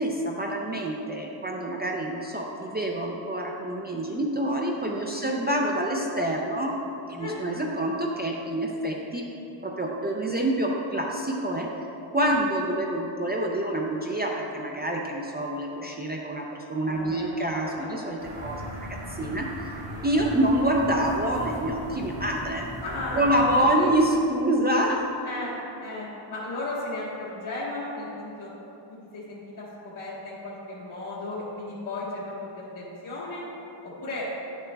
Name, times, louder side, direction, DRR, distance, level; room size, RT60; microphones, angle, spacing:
voice 1, 0.0-6.8 7.1-9.3 9.6-11.7 12.1-19.7 20.0-22.7 23.1-25.1 25.4-25.5, right 1 dB, 25° right, -2 dB, 0.4 m, -27 dB
voice 2, 16.9-17.9 19.9-20.1 22.8-23.9 25.2-25.5 25.8-28.5 28.9-29.7 29.9-33.4 34.0-34.3, left 2 dB, 85° left, -10 dB, 1.6 m, -35 dB
sound 1, 18.2-23.7, equal, 65° right, 1.3 m, -38 dB
11.0 x 7.2 x 2.2 m, 3.0 s
wide cardioid pair, 170°, 47 cm